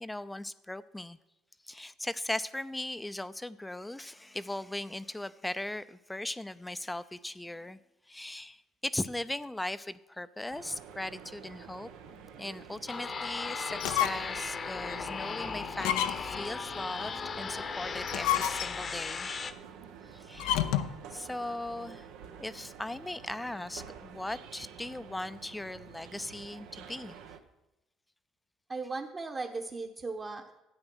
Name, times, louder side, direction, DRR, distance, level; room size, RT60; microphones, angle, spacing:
voice 1, 0.0-1.2 1.6-7.8 8.1-11.9 12.4-19.3 20.1-20.7 21.1-22.1 22.4-27.2, left 1 dB, 10° left, 14 dB, 0.5 m, -38 dB
sound 1, 10.5-27.4, right 7 dB, 80° right, 1.0 m, -49 dB
sound 2, 12.9-19.5, left 5 dB, 40° left, 0.9 m, -37 dB
sound 3, 13.7-14.4 14.9-15.0 15.8-16.5 17.9-19.0 20.4-21.0, left 11 dB, 85° left, 0.6 m, -30 dB
voice 2, 28.7-30.6, right 3 dB, 30° right, 0 dB, 1.2 m, -37 dB
12.5 x 8.9 x 6.2 m, 0.94 s
supercardioid pair, 85°, 0 cm